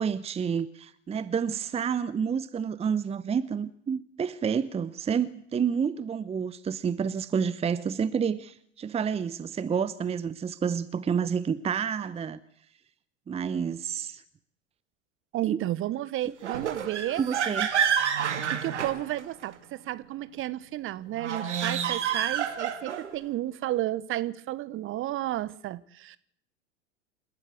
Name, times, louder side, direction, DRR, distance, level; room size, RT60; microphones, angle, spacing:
voice 1, 0.0-12.4 13.3-14.2 15.5-15.6 17.2-17.7, right 7 dB, 15° right, 0.9 m, -29 dB
voice 2, 15.3-17.2 18.2-26.2, right 14 dB, 35° right, 1.2 m, -32 dB
sound 1, 16.4-19.5 21.1-23.1, right 8 dB, 75° right, 2.4 m, -29 dB
28.0 x 13.0 x 8.5 m
figure-of-eight pair, 80°, 35 cm